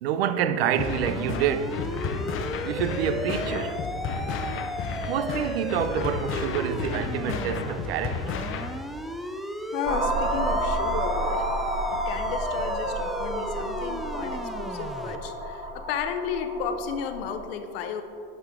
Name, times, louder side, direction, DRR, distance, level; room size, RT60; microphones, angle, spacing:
voice 1, 0.0-1.9 2.6-3.8 5.1-8.5, right 9 dB, 90° right, 0.5 m, -27 dB
sound 1, 0.7-15.2, equal, ahead, 0.4 m, -35 dB
sound 2, 0.8-8.8, left 5 dB, 45° left, 0.7 m, -32 dB
voice 2, 9.7-11.5 12.1-18.0, left 7 dB, 80° left, 0.8 m, -33 dB
sound 3, 9.9-17.5, right 1 dB, 20° right, 1.2 m, -30 dB
10.0 x 5.0 x 3.7 m
hypercardioid pair, 90°, 30 cm